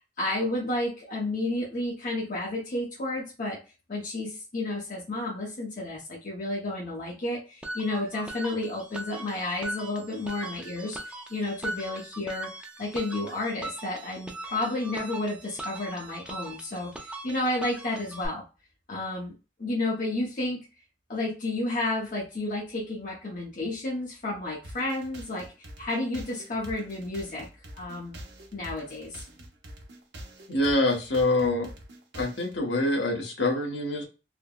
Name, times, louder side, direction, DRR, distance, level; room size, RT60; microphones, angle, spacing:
voice 1, 0.2-3.6 3.9-12.5 12.8-18.5 18.9-19.3 19.6-20.7 21.1-27.5 27.7-28.2 28.5-29.2, left 2 dB, 50° left, -3 dB, 0.7 m, -31 dB
sound 1, 7.6-18.3, right 1 dB, 5° right, 0.4 m, -40 dB
sound 2, 24.6-32.6, equal, 70° right, 0.7 m, -45 dB
voice 2, 30.5-31.7 32.1-34.1, left 2 dB, 80° left, 1 dB, 0.9 m, -25 dB
3.3 x 2.1 x 2.2 m, 0.31 s
head